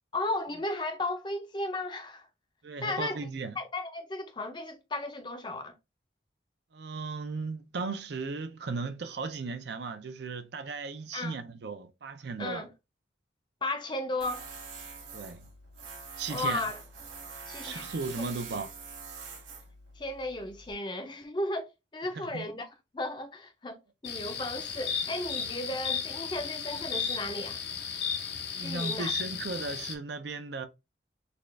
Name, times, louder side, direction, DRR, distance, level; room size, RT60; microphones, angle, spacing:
voice 1, 0.1-2.3 2.8-3.2 3.6-5.7 11.1-11.4 12.4-12.7 13.6-14.5 16.3-16.8 17.5-17.9 20.0-22.7 22.9-23.8 24.0-27.6 28.5-29.1, left 2 dB, 25° left, 0.6 m, -35 dB
voice 2, 2.6-3.5 6.7-12.6 15.1-15.5 16.2-16.6 17.6-18.7 22.1-22.5 28.5-30.7, right 4 dB, 65° right, 0.5 m, -36 dB
Tools, 14.2-20.7, right 5 dB, 90° right, 1.4 m, -45 dB
sound 1, 24.0-29.9, left 7 dB, 60° left, 0.7 m, -34 dB
4.2 x 2.4 x 3.2 m
head